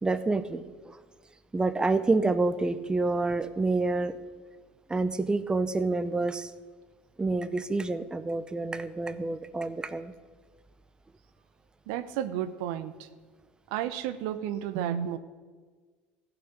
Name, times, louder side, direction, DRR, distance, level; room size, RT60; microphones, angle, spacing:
voice 1, 0.0-1.0 1.5-4.1 4.9-6.5 7.2-10.1, right 3 dB, 15° right, 12 dB, 0.8 m, -28 dB
voice 2, 11.9-13.1 13.7-15.2, right 10 dB, 75° right, 12 dB, 0.8 m, -32 dB
14.5 x 6.0 x 8.0 m, 1.4 s
supercardioid pair, 85°, 5 cm